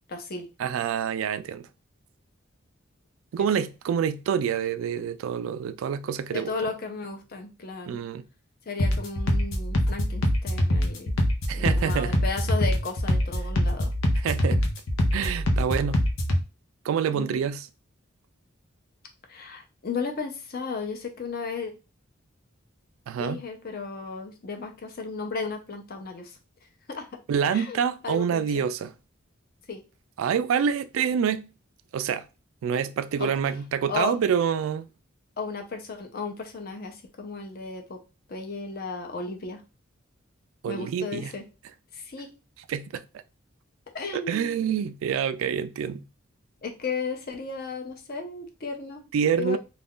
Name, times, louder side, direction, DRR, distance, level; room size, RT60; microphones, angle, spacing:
voice 1, 0.1-0.5 3.4-3.5 6.3-8.0 8.7-11.1 11.5-13.9 17.1-17.5 19.3-21.7 23.2-26.4 26.9-27.2 27.5-28.6 29.7-29.8 33.2-33.3 33.9-34.1 35.4-38.0 38.3-39.6 40.7-41.4 41.9-42.3 43.9-44.7 46.6-49.0 49.3-49.6, left 4 dB, 50° left, 0.6 m, -34 dB
voice 2, 0.6-1.7 3.3-6.5 7.9-8.2 11.5-12.2 14.2-14.6 15.1-16.0 16.8-17.6 23.1-23.4 27.3-28.9 30.2-31.5 31.9-32.2 32.6-34.9 40.6-41.3 42.7-43.0 44.3-46.0 49.1-49.6, right 7 dB, 75° right, 0.3 m, -27 dB
sound 1, 8.8-16.4, equal, 85° left, 0.7 m, -24 dB
2.5 x 2.3 x 3.5 m
head